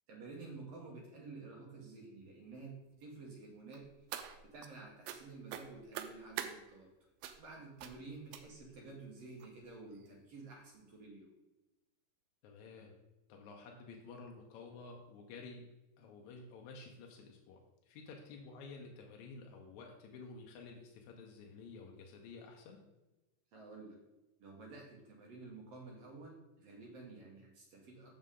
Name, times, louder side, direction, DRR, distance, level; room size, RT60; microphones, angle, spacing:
voice 1, 0.1-3.9 4.5-6.9 7.4-11.3 23.5-24.0 24.4-28.1, right 3 dB, 60° right, -2 dB, 2.0 m, -51 dB
sound 1, 3.7-4.7 5.0-5.2 5.5-6.5 7.2-7.5 7.8-8.0 8.3-8.7 9.4-9.5 9.9-10.1 10.4-10.5, right 10 dB, 90° right, 2.3 m, -44 dB
voice 2, 12.4-12.9 13.3-15.7 16.0-17.6 17.9-22.8, left 4 dB, 75° left, 2 dB, 1.8 m, -52 dB
6.7 x 6.5 x 3.7 m, 1.0 s
omnidirectional pair, 4.0 m